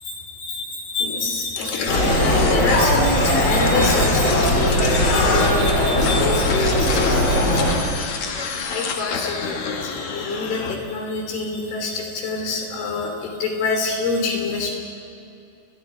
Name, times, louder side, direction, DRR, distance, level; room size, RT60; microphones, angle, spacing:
voice 1, 0.0-7.8 8.7-14.7, left 3 dB, 55° left, 1 dB, 4.9 m, -26 dB
sound 1, 1.6-10.7, left 5 dB, 70° left, 1.7 m, -29 dB
sound 2, 1.9-7.7, left 1 dB, 25° left, 3.7 m, -19 dB
29.0 x 22.0 x 4.6 m, 2.7 s
omnidirectional pair, 5.9 m